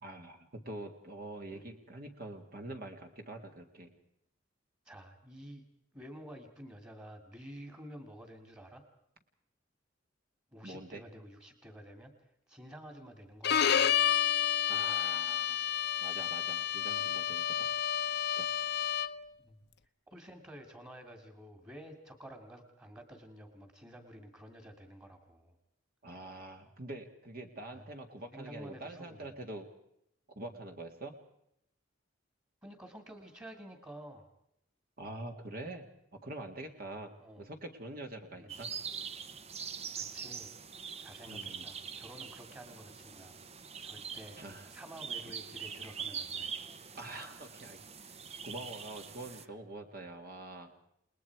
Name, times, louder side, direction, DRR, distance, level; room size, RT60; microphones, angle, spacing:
voice 1, 0.0-4.0 10.6-11.0 14.7-15.7 16.0-17.7 18.3-18.5 26.0-29.7 30.4-31.1 35.0-35.9 36.1-38.7 41.3-41.7 44.4-44.7 45.2-45.3 46.9-50.7, right 2 dB, 50° right, 4 dB, 2.0 m, -45 dB
voice 2, 4.9-5.6 5.9-8.8 10.5-12.1 12.5-14.1 14.6-15.3 19.4-19.6 20.1-25.6 27.7-27.9 28.3-29.4 32.6-34.3 37.2-37.4 38.4-38.5 40.0-40.5 41.0-44.4 44.7-47.4 49.3-49.5, equal, 20° right, 6 dB, 2.4 m, -51 dB
Bowed string instrument, 13.4-19.3, left 9 dB, 60° left, 0.7 m, -30 dB
sound 1, 38.5-49.4, right 6 dB, 35° right, 0.8 m, -43 dB
29.5 x 20.0 x 4.7 m, 0.75 s
head